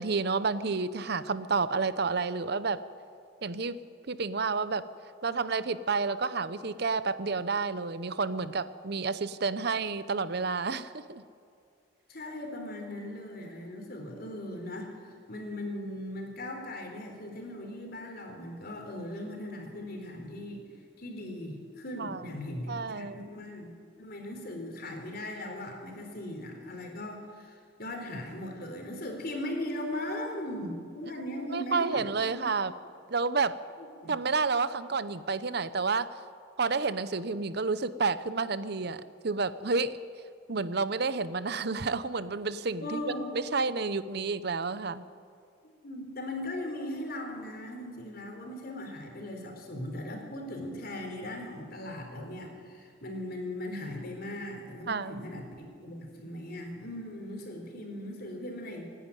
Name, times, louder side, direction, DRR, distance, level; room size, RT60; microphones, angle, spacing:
voice 1, 0.0-2.8 3.4-3.8 4.1-4.8 5.2-11.2 22.0-22.3 22.7-23.3 31.5-32.7 33.1-33.5 34.1-36.1 36.6-40.0 40.5-43.0 43.3-45.1 54.9-55.3, right 4 dB, 55° right, 14 dB, 0.7 m, -30 dB
voice 2, 12.1-20.6 21.0-23.7 24.0-32.5 33.8-34.1 42.8-43.3 45.6-58.8, left 1 dB, 50° left, 3 dB, 4.1 m, -39 dB
26.5 x 11.0 x 9.9 m, 2.4 s
head